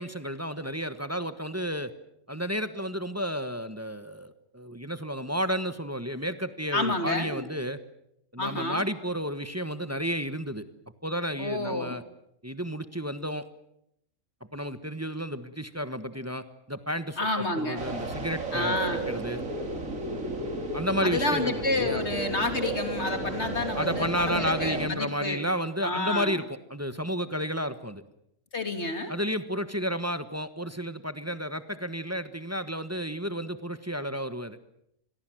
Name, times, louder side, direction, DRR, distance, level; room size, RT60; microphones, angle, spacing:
voice 1, 0.0-1.9 2.3-7.8 8.3-10.6 11.0-12.0 12.4-13.5 14.5-19.4 20.7-22.0 23.7-28.0 29.1-34.6, equal, 10° right, 10 dB, 1.2 m, -32 dB
voice 2, 6.7-7.4 8.4-8.9 11.4-11.9 17.2-17.8 18.5-19.1 21.0-25.4 25.8-26.4 28.5-29.1, left 2 dB, 55° left, 6 dB, 3.4 m, -29 dB
sound 1, 17.8-24.9, right 2 dB, 80° right, 3.4 m, -33 dB
28.0 x 22.0 x 7.7 m, 0.77 s
omnidirectional pair, 1.4 m